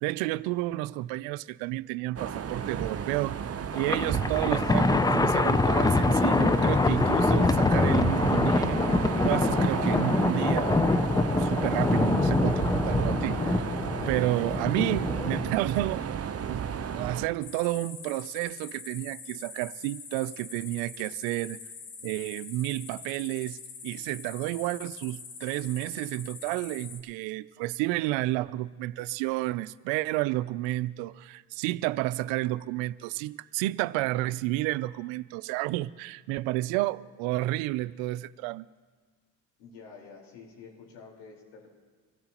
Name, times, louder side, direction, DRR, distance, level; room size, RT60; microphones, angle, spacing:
voice 1, 0.0-3.4 3.7-8.9 9.2-11.1 11.4-13.7 14.1-21.6 22.0-23.6 23.8-38.7, right 17 dB, 75° right, 0.6 m, -31 dB
sound 1, 2.2-17.3, right 7 dB, 30° right, 0.9 m, -33 dB
Thunder, 3.7-15.5, left 3 dB, 10° left, 0.4 m, -25 dB
sound 2, 17.4-27.0, left 5 dB, 60° left, 2.9 m, -44 dB
voice 2, 39.6-41.7, left 5 dB, 75° left, 4.5 m, -48 dB
24.5 x 15.5 x 3.0 m
hypercardioid pair, 65°, 47 cm